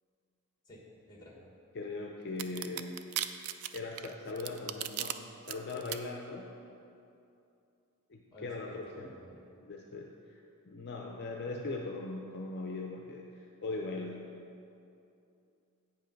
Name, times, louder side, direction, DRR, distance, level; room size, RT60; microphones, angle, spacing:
voice 1, 0.6-1.4 8.3-9.5, equal, 20° left, -2 dB, 1.4 m, -52 dB
voice 2, 1.7-3.0 3.7-5.2 5.5-6.5 8.1-9.1 9.6-10.4 10.7-14.3, left 3 dB, 50° left, 0 dB, 0.5 m, -40 dB
sound 1, 2.4-5.1 5.5-6.0, right 12 dB, 75° right, 0.4 m, -36 dB
8.4 x 5.4 x 5.2 m, 2.7 s
head